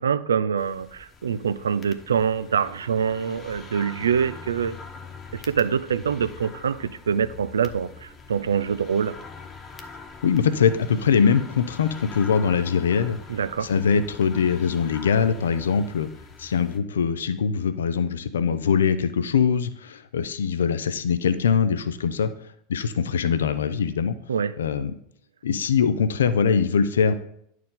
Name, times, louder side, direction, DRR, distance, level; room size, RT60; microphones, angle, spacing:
voice 1, 0.0-4.8 5.3-9.2 13.3-13.7 24.3-24.5, right 7 dB, 85° right, 14 dB, 0.4 m, -25 dB
sound 1, 0.6-16.8, left 4 dB, 30° left, 1.1 m, -43 dB
voice 2, 10.2-13.2 13.6-16.1 16.4-22.3 22.7-24.2 24.6-24.9 25.4-27.1, left 6 dB, 80° left, 12 dB, 0.5 m, -22 dB
10.5 x 4.6 x 3.8 m, 0.69 s
hypercardioid pair, 90°, 0 cm